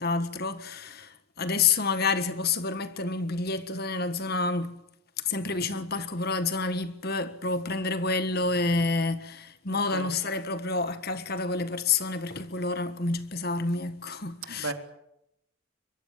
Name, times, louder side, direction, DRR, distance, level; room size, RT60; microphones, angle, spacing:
voice 1, 0.0-4.8 5.2-14.7, left 4 dB, 45° left, 1.6 m, -29 dB
voice 2, 9.7-10.1 14.5-14.7, right 3 dB, 75° right, 3.2 m, -35 dB
23.5 x 23.0 x 7.4 m
head